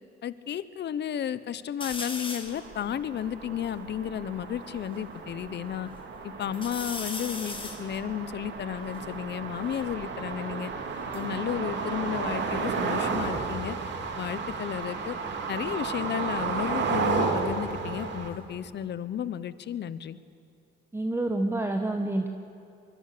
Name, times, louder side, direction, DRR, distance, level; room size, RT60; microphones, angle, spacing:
voice 1, 0.2-5.9 6.2-10.7 11.1-13.8 14.2-15.2 15.5-20.2, left 9 dB, 60° left, 15 dB, 1.0 m, -33 dB
sound 1, 1.8-2.6 3.2-3.3 3.5-5.0 5.5-6.1 6.5-9.9 10.8-12.8 13.0-13.5 15.1-17.7 18.1-18.9, left 3 dB, 25° left, 2.5 m, -42 dB
sound 2, 2.5-18.3, right 4 dB, 65° right, 2.8 m, -33 dB
voice 2, 20.9-22.3, right 2 dB, 10° right, 4 dB, 1.4 m, -28 dB
24.5 x 22.0 x 6.8 m, 2.7 s
cardioid pair, 90°, 20 cm